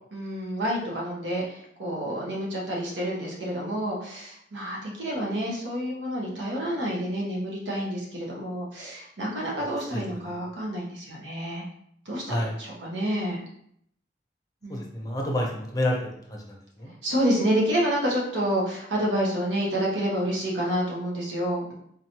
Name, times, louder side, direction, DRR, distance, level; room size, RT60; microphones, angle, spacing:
voice 1, 0.1-11.6 12.1-13.4 14.6-14.8 17.0-21.7, equal, 85° right, -3 dB, 1.1 m, -28 dB
voice 2, 9.6-10.4 12.3-12.6 14.7-16.9, left 1 dB, 20° left, 0 dB, 0.6 m, -30 dB
3.9 x 3.0 x 2.9 m, 0.69 s
head